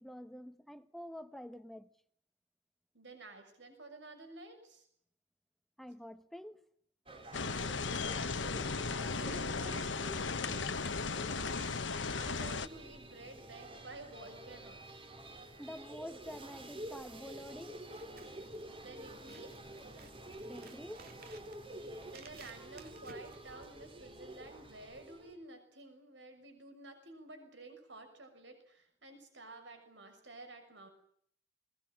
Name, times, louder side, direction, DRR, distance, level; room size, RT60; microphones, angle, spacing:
voice 1, 0.0-1.9 5.8-6.6 15.6-17.8 20.4-21.0, equal, ahead, 1.1 m, -47 dB
voice 2, 2.9-4.9 7.7-10.0 12.1-15.0 16.4-16.5 18.6-19.5 22.0-30.9, right 2 dB, 75° right, 6.7 m, -52 dB
sound 1, 7.1-25.4, right 1 dB, 30° right, 3.5 m, -49 dB
sound 2, 7.3-12.7, left 4 dB, 90° left, 1.2 m, -36 dB
Scissors, 17.9-24.1, right 5 dB, 55° right, 2.5 m, -58 dB
21.0 x 20.5 x 8.7 m
head